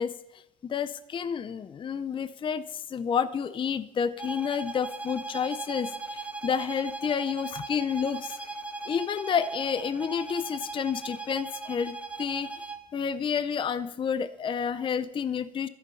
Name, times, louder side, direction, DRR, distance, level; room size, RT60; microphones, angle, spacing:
voice 1, 0.0-8.4 8.9-15.7, left 7 dB, 30° left, 16 dB, 0.5 m, -30 dB
sound 1, 4.2-12.9, right 3 dB, 10° right, 1.3 m, -38 dB
13.5 x 8.5 x 5.6 m, 0.91 s
cardioid pair, 110°, 17 cm